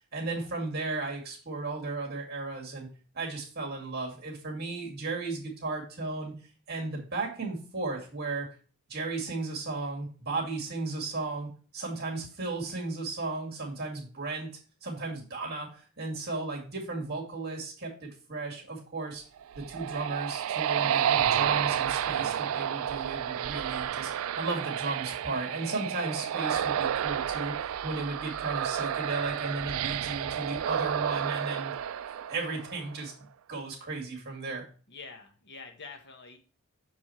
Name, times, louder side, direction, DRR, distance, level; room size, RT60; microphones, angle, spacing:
voice 1, 0.1-2.9 3.1-6.3 6.7-8.5 8.9-14.5 14.8-19.2 19.6-24.1 24.4-27.5 27.8-31.7 32.3-33.1 33.5-34.7, right 3 dB, 50° right, 0 dB, 2.2 m, -35 dB
sound 1, 19.4-32.9, right 9 dB, 75° right, 0.3 m, -30 dB
voice 2, 34.9-36.4, left 4 dB, 55° left, 6 dB, 1.0 m, -46 dB
6.3 x 4.8 x 4.2 m, 0.38 s
head